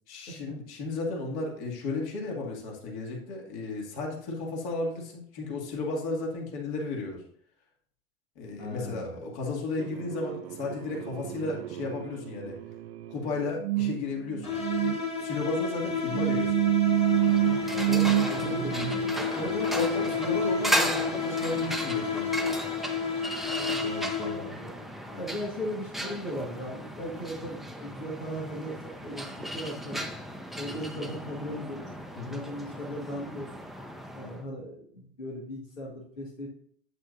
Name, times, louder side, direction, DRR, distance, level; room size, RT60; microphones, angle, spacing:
voice 1, 0.1-7.2 8.4-12.6 13.1-14.5 15.2-16.7 19.3-22.5 32.1-32.4, left 3 dB, 55° left, -1 dB, 2.3 m, -34 dB
voice 2, 8.6-9.2 17.7-20.2 23.6-24.7 25.1-30.0 30.6-31.8 32.1-33.5 34.2-36.5, equal, 85° left, -3 dB, 1.8 m, -38 dB
sound 1, 9.8-19.2, right 16 dB, 55° right, 0.5 m, -29 dB
sound 2, 14.4-24.6, left 5 dB, 15° left, 1.6 m, -31 dB
sound 3, 17.0-34.4, equal, ahead, 0.5 m, -36 dB
8.3 x 8.3 x 2.6 m, 0.62 s
figure-of-eight pair, 85°, 38 cm